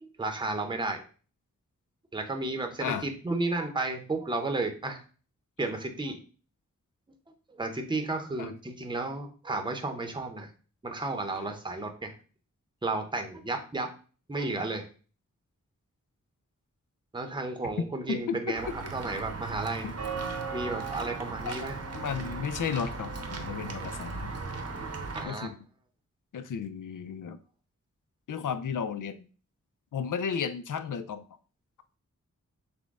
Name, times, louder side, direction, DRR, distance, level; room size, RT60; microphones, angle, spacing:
voice 1, 0.0-1.0 2.1-5.0 5.6-6.2 7.5-10.5 10.8-12.1 12.8-13.9 14.3-14.9 17.1-19.9 20.5-21.8 25.1-25.5, right 2 dB, 15° right, 5 dB, 0.7 m, -33 dB
voice 2, 18.1-18.8 19.8-19.9 21.4-24.3 25.2-25.6 26.3-27.4 28.3-29.3 29.9-31.2, left 7 dB, 80° left, 11 dB, 0.5 m, -34 dB
Walk footsteps / Bell, 18.6-25.2, right 4 dB, 55° right, 0.7 m, -37 dB
6.1 x 2.2 x 3.6 m, 0.38 s
wide cardioid pair, 85°, 30 cm